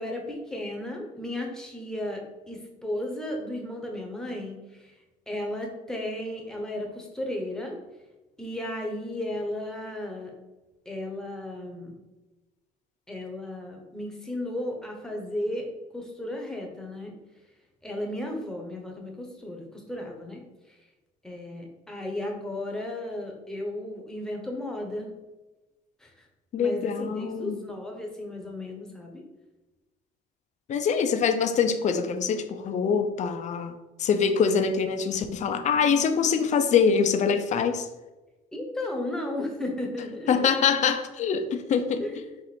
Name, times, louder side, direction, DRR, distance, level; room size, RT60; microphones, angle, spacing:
voice 1, 0.0-4.9 5.3-7.8 8.4-10.3 10.9-11.9 13.1-15.7 15.9-17.2 17.8-20.4 21.2-25.1 26.0-26.1 26.6-29.2 38.5-40.5 42.0-42.4, left 1 dB, 5° left, 1 dB, 0.9 m, -34 dB
voice 2, 26.5-27.6 30.7-33.7 34.0-37.9 40.3-42.2, left 6 dB, 45° left, 8 dB, 0.5 m, -24 dB
4.5 x 2.5 x 4.2 m, 1.1 s
cardioid pair, 110°, 17 cm